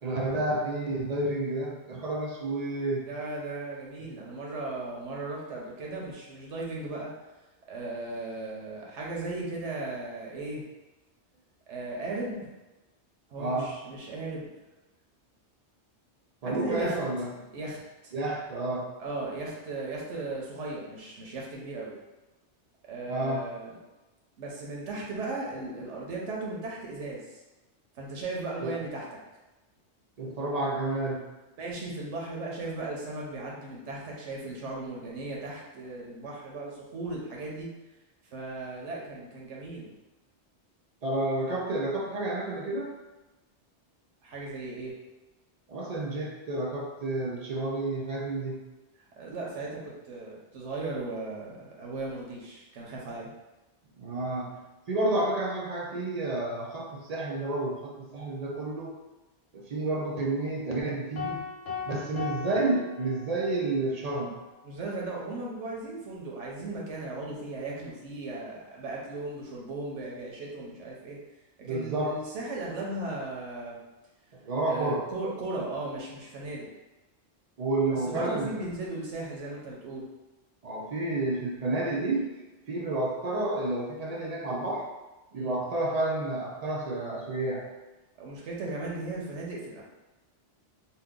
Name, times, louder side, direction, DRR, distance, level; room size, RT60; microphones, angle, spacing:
voice 1, 0.0-3.1 4.0-4.1 13.4-13.7 16.4-17.5 18.1-18.9 23.1-23.4 28.6-28.8 30.2-31.3 41.0-42.9 45.7-48.6 54.0-54.6 54.9-58.9 59.5-61.4 61.9-64.4 71.6-72.1 74.3-75.0 77.6-78.5 80.6-82.3 82.7-84.9 85.3-87.7, right 2 dB, 50° right, -2 dB, 0.5 m, -30 dB
voice 2, 3.0-7.1 7.7-10.6 11.7-12.5 13.3-14.5 16.4-17.0 17.5-18.1 19.0-21.9 22.9-23.8 24.4-27.4 27.9-29.0 31.6-37.7 38.3-39.9 44.2-45.0 49.2-53.3 61.9-62.2 64.6-71.2 71.7-73.8 74.6-76.7 78.1-80.1 85.3-85.6 88.2-89.8, right 2 dB, 90° right, -3 dB, 1.1 m, -37 dB
sound 1, 61.2-63.6, left 6 dB, 80° left, 1.0 m, -38 dB
2.8 x 2.2 x 3.6 m, 1.1 s
omnidirectional pair, 1.2 m